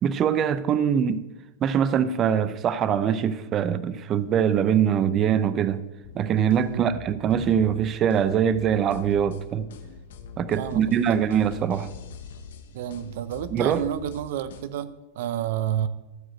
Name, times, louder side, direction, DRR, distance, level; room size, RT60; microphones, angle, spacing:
voice 1, 0.0-1.2 1.6-5.8 6.1-9.7 10.4-11.9 13.5-13.8, right 8 dB, 35° right, 0.7 m, -23 dB
sound 1, 6.0-14.6, left 5 dB, 75° left, 1.4 m, -43 dB
voice 2, 10.6-11.0 12.7-15.9, right 11 dB, 70° right, 0.7 m, -30 dB
14.5 x 4.9 x 8.0 m
hypercardioid pair, 115°, 0 cm